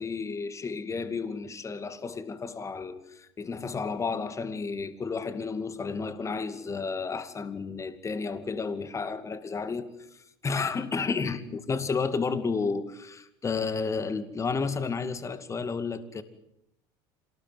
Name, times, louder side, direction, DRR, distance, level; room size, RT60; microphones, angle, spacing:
voice 1, 0.0-16.2, left 4 dB, 25° left, 2.5 m, -32 dB
27.0 x 19.5 x 9.3 m
supercardioid pair, 100°, 13 cm